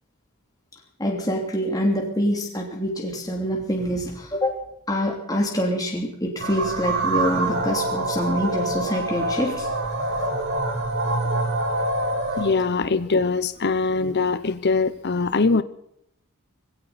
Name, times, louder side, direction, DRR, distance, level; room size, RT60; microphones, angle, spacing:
voice 1, 1.0-9.7, equal, 15° left, 0 dB, 3.1 m, -25 dB
sound 1, 6.4-12.6, right 2 dB, 55° right, 4.3 m, -25 dB
voice 2, 12.4-15.6, left 4 dB, 50° left, 14 dB, 0.8 m, -22 dB
20.5 x 16.5 x 4.2 m, 0.74 s
head